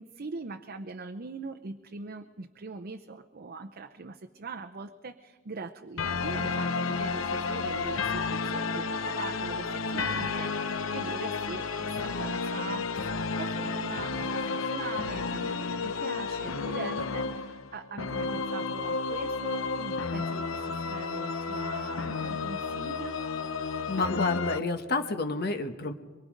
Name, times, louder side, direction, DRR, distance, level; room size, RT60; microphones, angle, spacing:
voice 1, 0.0-13.0 13.4-23.2, right 4 dB, 50° right, 5 dB, 0.7 m, -42 dB
sound 1, 6.0-24.6, left 4 dB, 90° left, 0.8 m, -32 dB
voice 2, 23.9-25.9, left 3 dB, 55° left, 7 dB, 1.2 m, -29 dB
23.5 x 22.5 x 5.2 m, 1.4 s
head